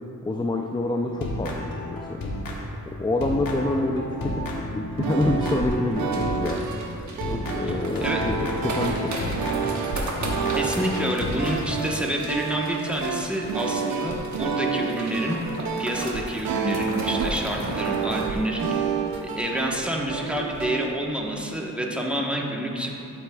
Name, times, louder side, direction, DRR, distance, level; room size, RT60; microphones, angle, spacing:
voice 1, 0.2-2.2 3.0-6.7 7.3-9.5, left 2 dB, 15° left, 2 dB, 0.4 m, -27 dB
sound 1, 1.1-2.9 3.2-6.8 7.2-11.8, left 1 dB, 75° left, 1.3 m, -32 dB
sound 2, 4.9-20.9, right 6 dB, 85° right, 0.6 m, -30 dB
sound 3, 6.1-19.9 20.2-20.3 20.5-20.9 21.2-21.4, right 1 dB, 55° right, 1.2 m, -37 dB
voice 2, 10.5-15.4 15.8-18.7 19.2-22.9, equal, 5° right, -2 dB, 1.1 m, -28 dB
12.0 x 8.0 x 2.3 m, 2.9 s
wide cardioid pair, 80°, 34 cm